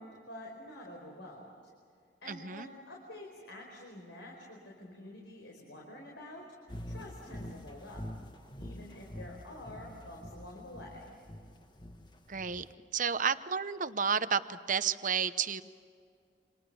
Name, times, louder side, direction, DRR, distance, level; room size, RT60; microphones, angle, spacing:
voice 1, 0.0-1.5 2.2-6.4 6.9-8.0 8.6-11.1, left 1 dB, 75° left, -1 dB, 4.9 m, -48 dB
voice 2, 2.3-2.7 12.3-12.7 12.9-15.6, right 6 dB, 45° right, 12 dB, 0.9 m, -31 dB
sound 1, 6.7-12.7, equal, 25° left, 1.6 m, -45 dB
29.0 x 26.5 x 7.0 m, 2.3 s
head